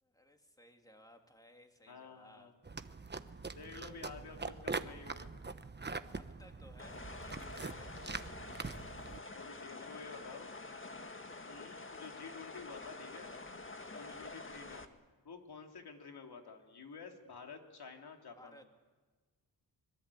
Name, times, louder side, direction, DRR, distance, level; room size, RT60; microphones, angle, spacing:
voice 1, 0.0-2.5 6.1-8.0 13.8-14.1 18.4-18.6, left 1 dB, 10° left, 4 dB, 3.1 m, -60 dB
voice 2, 1.9-2.5 3.6-5.4 6.8-7.1 7.9-8.3 9.3-10.5 11.4-13.3 14.0-14.9 15.2-18.6, left 5 dB, 70° left, 3 dB, 3.1 m, -51 dB
sound 1, 2.6-9.2, right 3 dB, 25° right, 1.1 m, -43 dB
sound 2, 6.8-14.9, left 3 dB, 30° left, 1.9 m, -48 dB
25.0 x 22.5 x 8.5 m, 1.4 s
cardioid pair, 75°, 39 cm